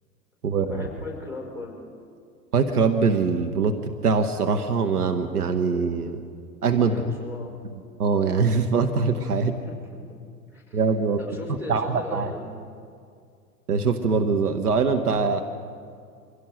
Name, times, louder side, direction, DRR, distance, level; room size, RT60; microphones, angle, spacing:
voice 1, 0.5-1.9 6.8-7.5 9.4-9.9 10.5-10.8 11.2-12.5, left 3 dB, 5° right, -1 dB, 4.7 m, -38 dB
voice 2, 2.5-6.2 6.6-6.9 8.0-9.5 10.7-11.2 11.7-12.3 13.7-15.4, right 5 dB, 70° right, 6 dB, 1.3 m, -23 dB
24.5 x 16.5 x 6.4 m, 2.3 s
figure-of-eight pair, 95°, 47 cm